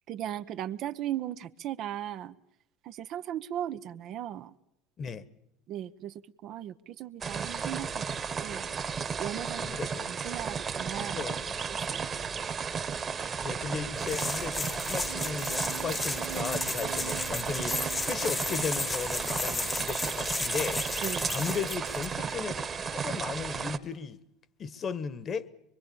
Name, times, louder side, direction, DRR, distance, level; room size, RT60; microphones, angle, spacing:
voice 1, 0.1-2.3 2.8-4.6 5.7-6.1 6.4-8.7 9.2-9.8 10.1-11.2 11.7-12.1 21.0-21.3, right 11 dB, 50° right, 1.0 m, -37 dB
sound 1, 7.2-23.8, right 6 dB, 30° right, 1.7 m, -34 dB
voice 2, 9.5-10.1 11.0-11.6 13.4-24.2 24.6-25.5, left 6 dB, 35° left, 1.5 m, -36 dB
sound 2, 14.0-22.1, left 3 dB, 15° left, 1.2 m, -34 dB
sound 3, 15.0-18.8, right 12 dB, 70° right, 1.3 m, -45 dB
24.0 x 23.5 x 7.1 m
hypercardioid pair, 80°, 0 cm